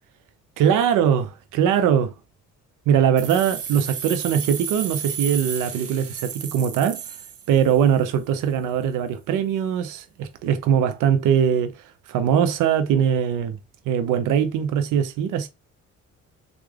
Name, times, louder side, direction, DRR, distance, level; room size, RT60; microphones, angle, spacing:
voice 1, 0.6-2.1 2.9-7.0 7.5-13.6 13.9-15.5, right 8 dB, 90° right, 0.6 m, -21 dB
sound 1, 3.2-8.0, right 8 dB, 50° right, 0.7 m, -33 dB
3.3 x 2.4 x 3.4 m
cardioid pair, 90°, 30 cm